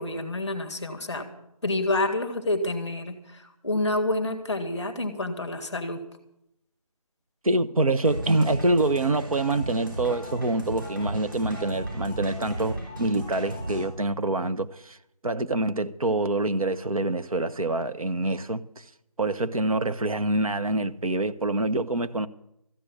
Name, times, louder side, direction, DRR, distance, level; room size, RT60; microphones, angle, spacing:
voice 1, 0.0-1.3 1.6-6.0, left 2 dB, 5° left, 1.1 m, -28 dB
voice 2, 7.4-15.0 15.2-18.8 19.2-22.3, right 2 dB, 60° right, 1.0 m, -26 dB
sound 1, 8.0-13.9, right 1 dB, 35° right, 5.5 m, -36 dB
14.0 x 7.6 x 9.9 m
figure-of-eight pair, 170°, 20 cm